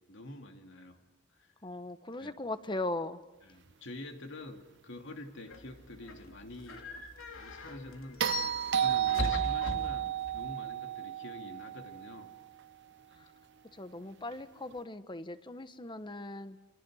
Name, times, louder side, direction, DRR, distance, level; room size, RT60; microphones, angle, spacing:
voice 1, 0.1-1.0 1.3-1.5 2.2-2.3 3.5-6.8 7.3-12.3, left 1 dB, 65° left, 2.9 m, -47 dB
voice 2, 1.6-3.2 7.5-7.6 9.1-9.5 13.1-13.3 13.6-16.6, left 2 dB, 25° left, 1.2 m, -39 dB
sound 1, 5.5-10.5, left 2 dB, 85° left, 3.4 m, -40 dB
sound 2, 8.2-12.5 14.7-14.8, right 10 dB, 60° right, 0.9 m, -32 dB
29.5 x 26.0 x 6.5 m
head